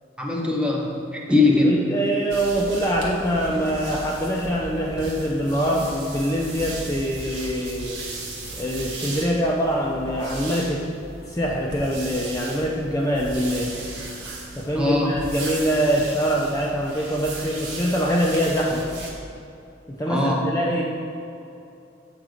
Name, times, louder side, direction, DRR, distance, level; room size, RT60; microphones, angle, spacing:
voice 1, 0.2-1.8 14.7-15.2 20.1-20.4, left 2 dB, 5° right, -2 dB, 0.8 m, -21 dB
voice 2, 1.6-8.0 8.6-10.8 11.3-13.7 14.6-18.9 19.9-20.8, equal, 20° left, -3 dB, 0.5 m, -24 dB
sound 1, 2.3-19.1, right 2 dB, 75° right, 1.3 m, -36 dB
7.4 x 3.9 x 5.0 m, 2.7 s
head